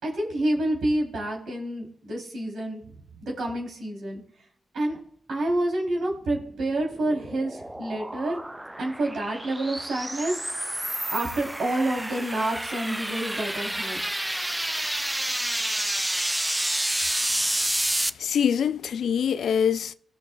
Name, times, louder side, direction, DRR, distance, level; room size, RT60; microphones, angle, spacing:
voice 1, 0.0-2.8 3.2-4.2 4.7-5.0 5.3-8.4 8.8-10.4 11.1-14.0, right 1 dB, 75° right, 3.4 m, -28 dB
sound 1, 6.4-18.1, right 1 dB, 10° right, 0.3 m, -29 dB
voice 2, 18.2-19.9, left 8 dB, 75° left, 0.4 m, -24 dB
18.0 x 6.5 x 2.4 m
cardioid pair, 65°, 0 cm